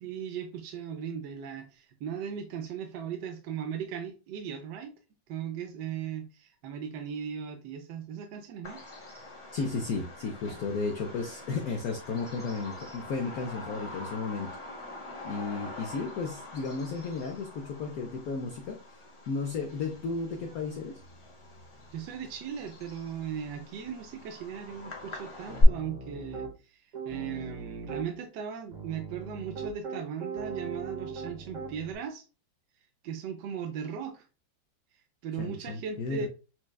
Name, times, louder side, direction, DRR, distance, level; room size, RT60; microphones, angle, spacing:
voice 1, 0.0-4.9 5.3-8.8 21.9-32.3 33.0-34.3 35.2-36.3, right 7 dB, 75° right, 1.0 m, -38 dB
Bird vocalization bird call bird song, 8.6-25.6, left 2 dB, 50° left, 0.3 m, -41 dB
voice 2, 9.5-14.6 15.2-19.0 19.3-21.0 35.4-36.3, left 4 dB, 70° left, 0.9 m, -34 dB
Piano, 25.5-26.5 26.9-28.1 28.7-31.9, right 5 dB, 50° right, 1.5 m, -39 dB
6.0 x 2.2 x 2.2 m
omnidirectional pair, 2.1 m